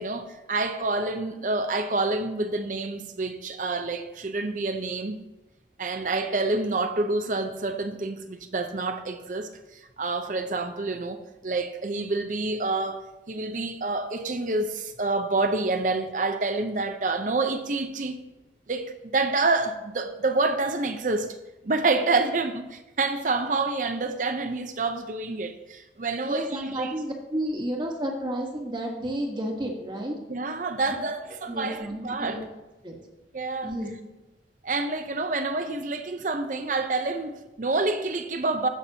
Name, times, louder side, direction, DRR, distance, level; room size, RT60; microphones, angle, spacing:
voice 1, 0.0-5.2 5.8-9.5 10.0-18.2 18.7-21.4 21.6-26.9 30.3-32.4 33.3-33.7 34.6-38.7, right 3 dB, 45° right, 0.6 m, -28 dB
voice 2, 26.2-30.1 31.5-32.4 32.8-33.0 33.6-33.9, right 1 dB, 25° right, 1.3 m, -31 dB
16.0 x 5.9 x 2.8 m
head